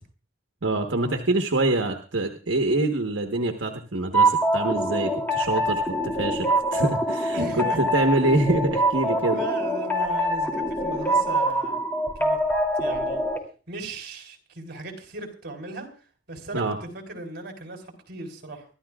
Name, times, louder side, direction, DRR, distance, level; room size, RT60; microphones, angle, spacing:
voice 1, 0.6-9.4 16.5-16.8, right 2 dB, 85° right, 4 dB, 1.2 m, -25 dB
sound 1, 4.1-13.4, right 1 dB, 10° left, 2.9 m, -24 dB
voice 2, 7.3-7.8 9.3-11.8 12.2-12.4 12.8-13.2 13.7-15.9 16.3-18.7, right 2 dB, 55° right, 3 dB, 3.7 m, -36 dB
24.0 x 13.0 x 2.4 m, 0.37 s
head